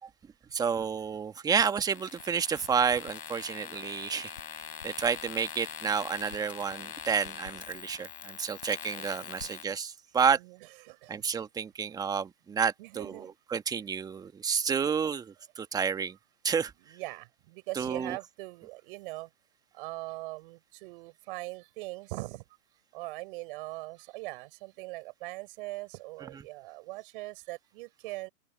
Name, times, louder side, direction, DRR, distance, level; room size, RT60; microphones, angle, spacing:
voice 1, 0.5-10.4 11.1-16.2 16.4-16.7 17.8-18.2 26.2-26.4, right 6 dB, 10° right, 1.6 m, -30 dB
sound 1, 1.9-9.6, left 8 dB, 60° left, 6.0 m, -43 dB
voice 2, 10.9-11.2 12.8-13.3 16.9-19.3 19.7-22.4 22.9-28.3, right 22 dB, 35° right, 7.4 m, -41 dB
open air
hypercardioid pair, 135°, 46 cm